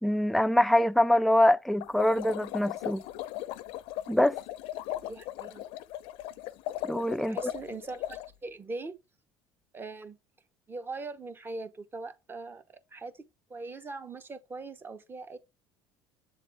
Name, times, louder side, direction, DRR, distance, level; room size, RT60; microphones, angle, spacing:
voice 1, 0.0-3.0 4.1-4.4 6.8-7.5, left 1 dB, ahead, 0.3 m, -24 dB
sound 1, 1.8-8.3, left 13 dB, 75° left, 0.5 m, -38 dB
voice 2, 5.0-5.6 7.2-9.0 9.7-10.2 10.7-13.2 13.5-15.4, right 3 dB, 20° right, 0.9 m, -41 dB
7.9 x 3.6 x 3.4 m
supercardioid pair, 110°, 10 cm